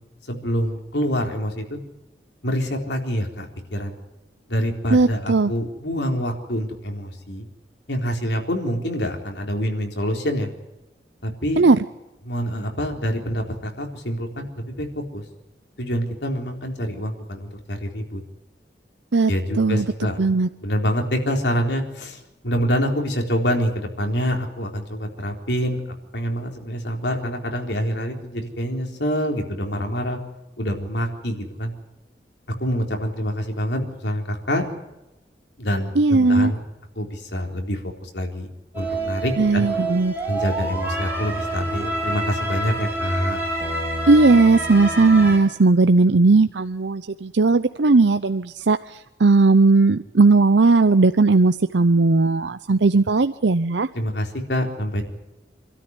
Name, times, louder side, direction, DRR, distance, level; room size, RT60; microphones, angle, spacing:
voice 1, 0.3-1.8 2.4-4.0 4.5-7.5 7.9-10.5 11.2-11.6 12.3-14.9 15.1-15.2 15.8-18.2 19.3-20.3 20.6-25.8 26.1-30.2 30.6-31.7 32.6-34.6 35.6-36.6 37.0-38.5 38.7-39.7 40.3-43.4 53.9-55.0, equal, 80° left, 3 dB, 4.1 m, -26 dB
voice 2, 4.9-5.5 11.6-11.8 19.1-19.3 19.6-19.9 20.2-20.5 35.9-36.5 39.4-40.1 44.1-53.9, right 3 dB, 90° right, 10 dB, 0.7 m, -17 dB
sound 1, 38.7-45.4, right 2 dB, 10° right, 6.2 m, -27 dB
26.5 x 13.0 x 9.7 m, 0.98 s
head